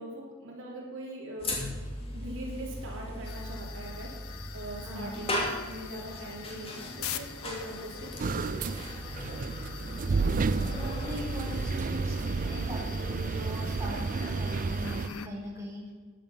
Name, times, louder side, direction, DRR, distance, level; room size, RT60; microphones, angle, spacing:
voice 1, 0.0-1.6 2.1-4.1 4.5-8.7, right 1 dB, 65° right, -2 dB, 3.2 m, -41 dB
sound 1, 1.4-14.6, left 1 dB, 25° left, 2.6 m, -38 dB
sound 2, 3.2-15.3, left 9 dB, 75° left, 0.9 m, -45 dB
voice 2, 4.8-5.2 10.0-15.9, equal, 15° right, -5 dB, 4.2 m, -40 dB
sound 3, 8.2-15.1, right 4 dB, 40° right, 0.4 m, -31 dB
14.0 x 10.5 x 5.6 m, 1.5 s
head